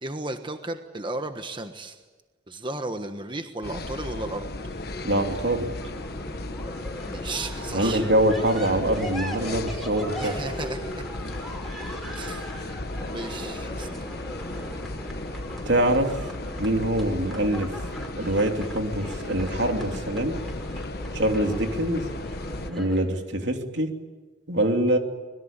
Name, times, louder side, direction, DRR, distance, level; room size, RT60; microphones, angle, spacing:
voice 1, 0.0-2.0 2.5-4.5 7.0-8.0 10.2-11.1 12.1-12.6 13.1-13.9, right 2 dB, 25° right, 7 dB, 1.3 m, -34 dB
sound 1, 3.6-22.7, left 2 dB, 60° left, 1.3 m, -35 dB
sound 2, 4.6-23.0, equal, ahead, 5.4 m, -39 dB
voice 2, 5.0-5.7 7.7-10.3 15.6-16.3 16.6-17.8 18.1-20.4 21.1-22.1 22.7-23.9 24.5-25.0, right 1 dB, 80° right, 4 dB, 3.0 m, -24 dB
25.5 x 22.0 x 8.9 m, 1.2 s
head